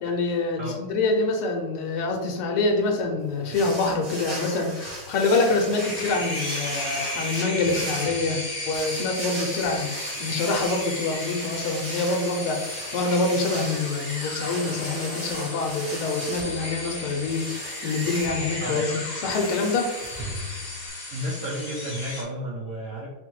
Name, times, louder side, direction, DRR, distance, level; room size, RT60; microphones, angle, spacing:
voice 1, 0.0-19.9, left 3 dB, 85° left, 3 dB, 1.6 m, -26 dB
sound 1, 3.5-20.9, right 1 dB, 25° right, 1.0 m, -38 dB
sound 2, 5.8-22.2, left 2 dB, 65° left, 0.4 m, -34 dB
voice 2, 21.1-23.1, equal, 75° right, -4 dB, 0.7 m, -32 dB
4.4 x 2.1 x 4.5 m, 1.1 s
omnidirectional pair, 2.3 m